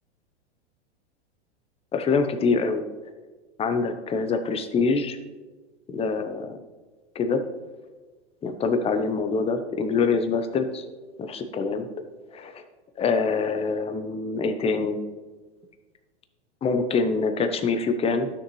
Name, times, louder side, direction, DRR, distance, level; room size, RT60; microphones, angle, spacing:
voice 1, 1.9-2.9 3.6-5.2 5.9-6.6 7.1-7.4 8.4-10.8 11.2-11.9 12.3-12.6 13.0-15.0 16.6-18.3, left 4 dB, 20° left, 8 dB, 0.8 m, -25 dB
12.0 x 6.5 x 3.1 m, 1.3 s
hypercardioid pair, 110°, 33 cm